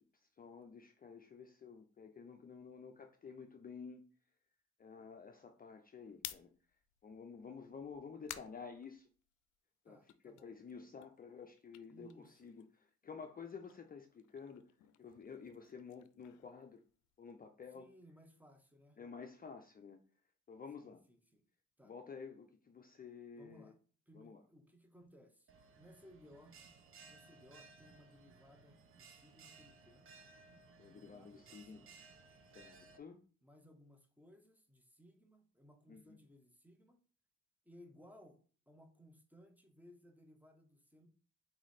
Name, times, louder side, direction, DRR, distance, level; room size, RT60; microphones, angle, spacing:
voice 1, 0.2-4.0 4.8-6.5 7.0-9.1 9.8-14.6 15.0-16.8 17.2-17.9 19.0-20.0 20.5-21.0 21.8-23.7 24.1-24.4 30.8-31.8 32.5-33.2 35.9-36.2, left 5 dB, 30° left, 0.5 m, -51 dB
sound 1, 6.1-9.6 9.9-12.9 13.2-17.3, left 13 dB, 80° left, 0.5 m, -55 dB
voice 2, 9.9-10.5 11.9-12.4 17.7-19.0 20.8-21.4 21.8-21.9 23.3-23.8 24.1-25.5 25.8-26.6 27.1-30.1 30.9-31.9 33.4-37.0 37.6-41.1, equal, 5° right, 0.9 m, -62 dB
Bell, 25.5-33.0, right 4 dB, 45° right, 0.8 m, -60 dB
4.1 x 3.0 x 4.0 m
cardioid pair, 90°, 30 cm